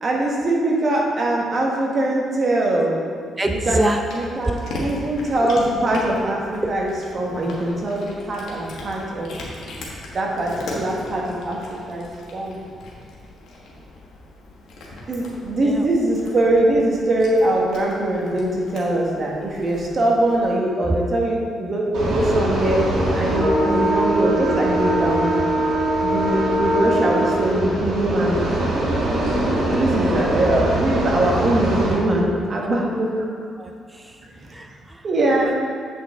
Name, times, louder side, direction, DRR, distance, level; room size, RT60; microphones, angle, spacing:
voice 1, 0.0-3.0 3.5-3.8 4.4-9.3 10.1-12.6 15.1-22.8 23.1-25.3 26.0-28.4 29.7-33.1 35.0-35.5, right 1 dB, 45° right, -2 dB, 1.6 m, -22 dB
Cat, 3.4-20.5, left 1 dB, 75° left, 1.6 m, -39 dB
voice 2, 3.4-4.0 4.4-4.6 5.1-5.5 6.6-6.7 15.6-15.9 20.9-21.0 23.6-23.9 29.8-30.6 32.6-33.3 33.6-34.2 34.5-35.6, right 1 dB, 15° right, 4 dB, 0.5 m, -27 dB
sound 1, 21.9-31.9, right 1 dB, 70° right, 2.0 m, -22 dB
8.2 x 5.8 x 3.8 m, 2.1 s
cardioid pair, 90°, 0 cm